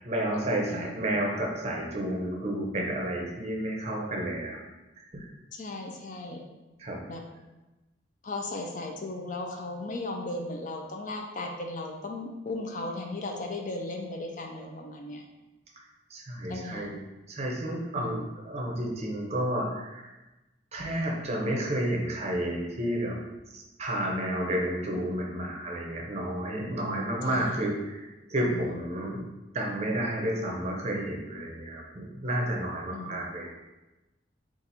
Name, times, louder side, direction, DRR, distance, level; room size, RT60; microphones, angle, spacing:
voice 1, 0.0-4.6 5.1-5.3 6.8-7.0 16.1-17.0 17.3-20.1 20.7-23.2 23.5-29.2 29.5-33.5, right 1 dB, 35° right, -1 dB, 0.6 m, -31 dB
voice 2, 0.7-1.1 5.5-6.4 7.1-7.2 8.2-15.2 16.5-16.9 18.0-18.3 27.3-27.6 28.5-28.8 32.9-33.2, left 2 dB, 45° left, 2 dB, 0.5 m, -36 dB
3.9 x 2.5 x 4.1 m, 1.1 s
head